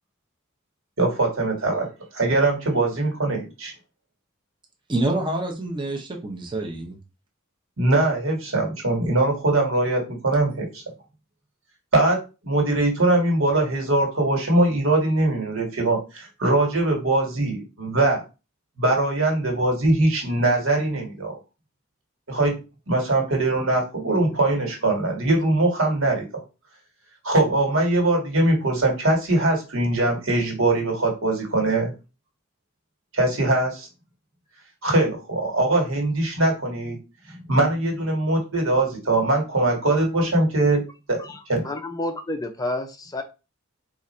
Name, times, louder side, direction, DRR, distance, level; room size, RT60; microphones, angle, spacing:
voice 1, 1.0-1.9 2.1-3.7 7.8-10.8 11.9-12.2 12.4-18.2 18.8-21.4 22.3-22.6 22.9-26.3 27.2-31.9 33.1-33.9 34.8-37.0 37.3-40.8 41.1-41.2 41.5-41.6, right 2 dB, 75° right, 1.6 m, -22 dB
voice 2, 4.9-7.0, right 2 dB, 25° right, 0.7 m, -27 dB
voice 3, 41.6-43.2, left 2 dB, 20° left, 0.5 m, -29 dB
4.0 x 2.5 x 4.2 m
head